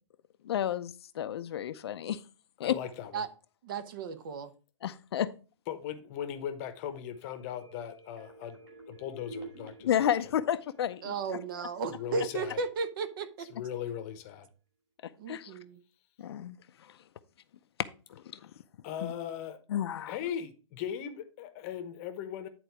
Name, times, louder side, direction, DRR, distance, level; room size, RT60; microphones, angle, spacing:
voice 1, 0.4-2.2 2.6-2.8 4.8-5.3 9.8-11.4 15.0-15.6 16.2-17.0 18.1-18.5 19.0-19.1 19.7-20.2, left 10 dB, 55° left, 11 dB, 0.6 m, -32 dB
voice 2, 2.6-3.2 5.7-8.6 8.9-10.1 11.9-12.6 13.4-14.5 18.8-19.6 20.1-22.5, left 9 dB, 30° left, 9 dB, 1.0 m, -38 dB
voice 3, 3.6-4.5 11.0-13.5 15.2-15.8, right 4 dB, 45° right, 11 dB, 1.0 m, -35 dB
sound 1, 7.1-12.8 13.2-13.3, right 3 dB, 20° right, 2.2 m, -51 dB
10.0 x 4.0 x 4.6 m, 0.34 s
hypercardioid pair, 160°, 16 cm